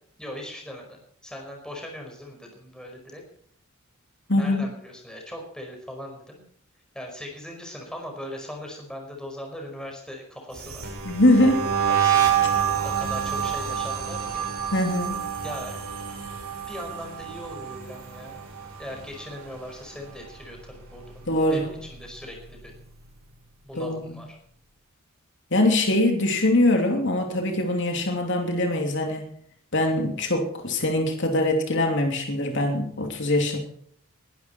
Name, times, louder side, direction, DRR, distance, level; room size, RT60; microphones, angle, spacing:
voice 1, 0.2-3.2 4.3-6.4 6.9-10.9 11.4-12.4 12.8-14.4 15.4-15.8 16.7-18.4 18.8-22.7 23.6-24.4, left 1 dB, 5° left, 1 dB, 5.1 m, -39 dB
voice 2, 4.3-4.6 11.0-11.6 14.7-15.2 21.3-21.7 23.7-24.2 25.5-29.3 29.7-33.6, left 1 dB, 55° left, 3 dB, 2.9 m, -23 dB
sound 1, 10.5-19.7 20.0-20.4 20.7-22.3, right 8 dB, 65° right, 5.6 m, -28 dB
21.5 x 12.0 x 4.6 m, 0.64 s
head